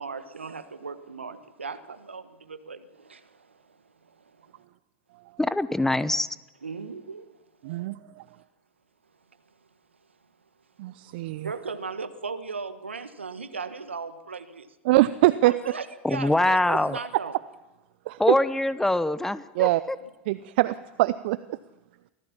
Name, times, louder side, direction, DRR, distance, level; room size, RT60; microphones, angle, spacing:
voice 1, 0.0-4.6 6.6-7.3 7.7-7.8 9.5-9.6 11.0-14.8 15.4-17.4, right 4 dB, 85° right, 1.4 m, -38 dB
voice 2, 5.4-6.3 16.0-17.0 18.2-20.0, left 1 dB, 5° left, 0.9 m, -24 dB
voice 3, 7.6-8.2 10.8-11.5 14.9-15.5 18.1-18.2 19.6-19.8 20.3-21.6, right 18 dB, 60° right, 0.6 m, -23 dB
24.5 x 17.0 x 7.2 m
figure-of-eight pair, 85°, 6 cm